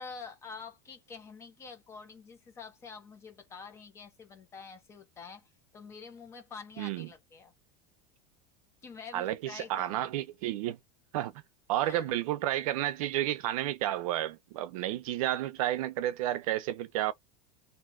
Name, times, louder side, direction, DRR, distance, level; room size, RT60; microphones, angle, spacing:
voice 1, 0.0-7.5 8.8-10.0 11.8-12.1, left 5 dB, 15° left, 0.4 m, -47 dB
voice 2, 6.8-7.1 9.1-10.8 11.1-11.3 11.7-17.1, right 13 dB, 60° right, 0.5 m, -31 dB
2.6 x 2.2 x 3.6 m
supercardioid pair, 180°, 21 cm